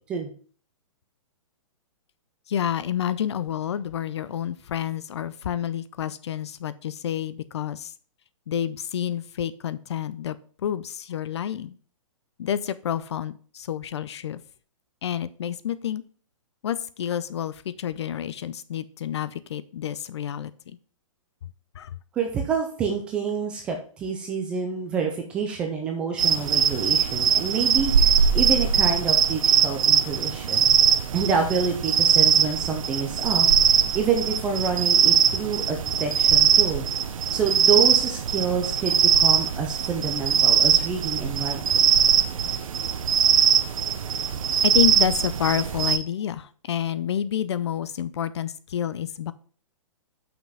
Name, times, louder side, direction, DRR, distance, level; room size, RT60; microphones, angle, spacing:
voice 1, 2.5-7.9 8.5-10.4 10.6-11.7 12.4-14.4 15.0-16.0 16.6-20.8 21.7-21.9 44.6-49.3, left 10 dB, 55° left, 15 dB, 0.5 m, -29 dB
voice 2, 22.1-30.8 31.1-33.5 33.9-36.8 37.3-41.8, right 6 dB, 5° right, 2 dB, 0.3 m, -28 dB
sound 1, 26.2-46.0, right 8 dB, 80° right, 0.8 m, -21 dB
5.9 x 5.2 x 5.5 m, 0.43 s
hypercardioid pair, 175°, 17 cm